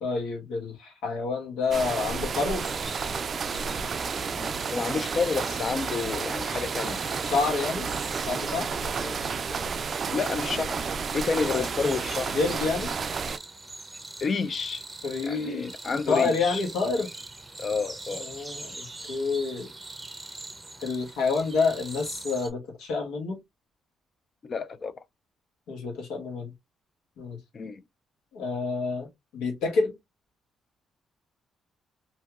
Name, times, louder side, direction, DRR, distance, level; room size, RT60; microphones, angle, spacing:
voice 1, 0.0-2.7 7.3-7.9 8.3-8.7 11.5-11.7 12.3-12.9 15.0-15.7 16.1-17.1 18.2-19.7 20.8-23.4 25.7-26.5 27.2-27.4 28.3-30.0, left 4 dB, 90° left, 1.3 m, -28 dB
sound 1, 1.7-13.4, right 5 dB, 45° right, 0.3 m, -31 dB
sound 2, 2.6-22.5, right 2 dB, 15° right, 0.7 m, -43 dB
voice 2, 4.3-7.0 9.0-9.2 10.1-12.4 14.2-14.8 15.2-16.6 17.6-18.5 24.4-24.9 27.5-27.8, left 4 dB, 45° left, 0.4 m, -30 dB
2.8 x 2.7 x 2.3 m
cardioid pair, 90°, 0 cm